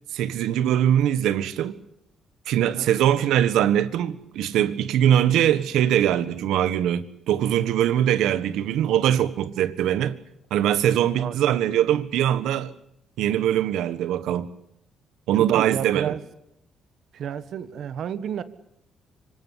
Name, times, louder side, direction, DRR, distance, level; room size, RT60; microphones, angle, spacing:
voice 1, 0.1-1.8 2.5-10.2 10.5-12.7 13.2-14.5 15.3-16.1, right 11 dB, 85° right, 1.4 m, -22 dB
voice 2, 2.6-2.9 11.2-11.9 15.4-16.2 17.1-18.4, right 8 dB, 70° right, 1.6 m, -32 dB
25.5 x 17.0 x 10.0 m
cardioid pair, 90°, 0 cm